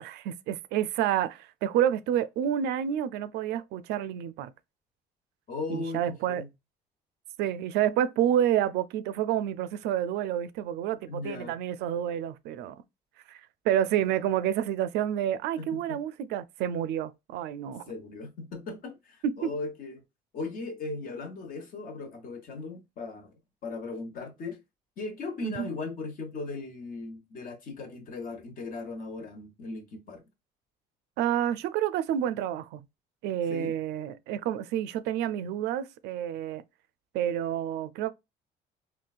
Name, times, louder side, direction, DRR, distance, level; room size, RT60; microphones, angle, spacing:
voice 1, 0.0-4.5 5.7-6.4 7.4-12.8 13.3-17.8 19.2-19.3 25.4-25.7 31.2-32.8 33.2-36.6 37.1-38.1, right 10 dB, 85° right, 0.4 m, -29 dB
voice 2, 5.5-6.5 11.1-11.6 15.6-16.0 17.9-20.0 20.3-23.3 23.6-24.6 25.0-30.2 33.5-33.7, left 3 dB, 55° left, 1.1 m, -38 dB
3.8 x 2.3 x 2.3 m
cardioid pair, 110°, 17 cm